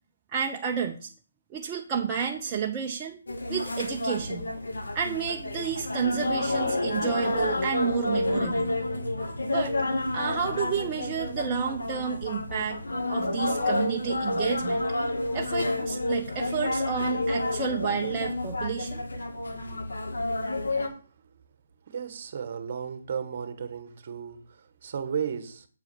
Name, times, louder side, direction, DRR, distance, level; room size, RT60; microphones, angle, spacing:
voice 1, 0.3-1.1 1.5-3.2 3.5-4.5 4.9-8.7 9.5-9.8 10.1-12.8 13.1-14.8 15.3-19.0, right 7 dB, 20° right, 0.7 m, -30 dB
sound 1, 3.3-20.9, left 2 dB, 85° left, 1.8 m, -29 dB
voice 2, 21.9-25.7, right 7 dB, 45° right, 1.3 m, -34 dB
7.6 x 4.7 x 6.1 m
hypercardioid pair, 155°, 0 cm